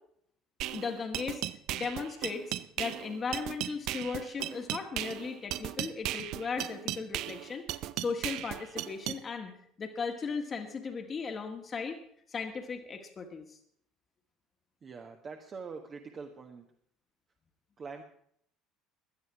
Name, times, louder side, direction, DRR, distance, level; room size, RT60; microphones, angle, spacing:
sound 1, 0.6-9.2, right 14 dB, 60° right, 0.5 m, -36 dB
voice 1, 0.7-1.4 1.7-2.4 2.8-7.6 8.0-12.0 12.3-13.6, left 5 dB, 35° left, 4 dB, 1.7 m, -37 dB
voice 2, 14.8-16.7 17.8-18.0, right 5 dB, 35° right, 3 dB, 1.4 m, -44 dB
18.0 x 11.5 x 4.8 m, 0.68 s
figure-of-eight pair, 60°, 0 cm